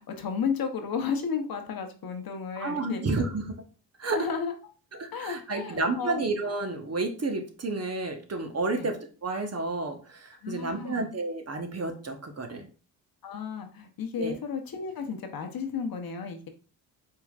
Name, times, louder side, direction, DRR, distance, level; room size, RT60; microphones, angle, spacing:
voice 1, 0.0-3.0 4.1-4.5 5.1-6.2 8.7-8.9 10.4-11.1 13.2-16.5, left 6 dB, 50° left, 6 dB, 0.9 m, -33 dB
voice 2, 2.6-3.5 4.0-4.3 5.0-12.7 14.2-14.4, right 3 dB, 35° right, 4 dB, 1.1 m, -31 dB
4.5 x 3.7 x 2.4 m, 0.37 s
supercardioid pair, 60°, 45 cm